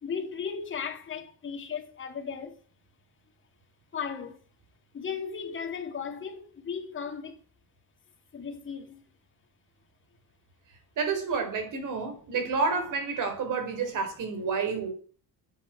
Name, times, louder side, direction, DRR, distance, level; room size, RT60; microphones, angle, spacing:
voice 1, 0.0-2.6 3.9-4.4 4.9-7.4 8.3-9.0, left 6 dB, 30° left, 2.4 m, -36 dB
voice 2, 11.0-14.9, right 5 dB, 55° right, 4.4 m, -29 dB
11.5 x 8.3 x 9.0 m
cardioid pair, 180°, 37 cm